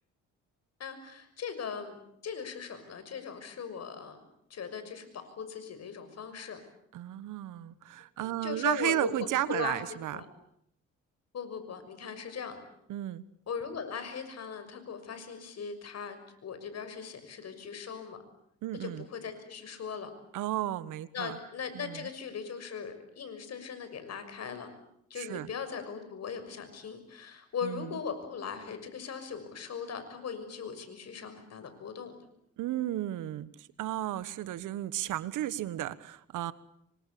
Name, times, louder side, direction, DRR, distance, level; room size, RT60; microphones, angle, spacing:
voice 1, 0.8-4.2 4.5-6.6 8.2-9.8 10.1-10.3 11.3-12.6 13.5-18.2 18.7-20.1 21.1-24.7 25.1-32.2, left 6 dB, 55° left, 9 dB, 6.3 m, -39 dB
voice 2, 6.9-10.2 12.9-13.2 18.6-19.1 20.3-21.3 21.7-22.1 25.2-25.5 27.6-27.9 32.6-33.5 33.8-36.5, right 13 dB, 85° right, 16 dB, 1.5 m, -33 dB
27.5 x 24.5 x 8.6 m, 0.73 s
cardioid pair, 90°, 30 cm